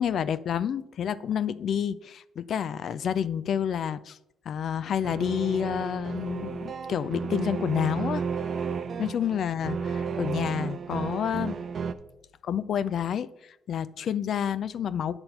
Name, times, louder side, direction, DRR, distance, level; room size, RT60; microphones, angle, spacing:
voice 1, 0.0-4.2 4.5-8.2 9.0-11.6 12.4-13.3 13.7-15.2, left 8 dB, 65° left, 0.4 m, -29 dB
sound 1, 5.0-11.9, right 6 dB, 50° right, 0.5 m, -33 dB
9.7 x 4.3 x 5.5 m
cardioid pair, 90°, 0 cm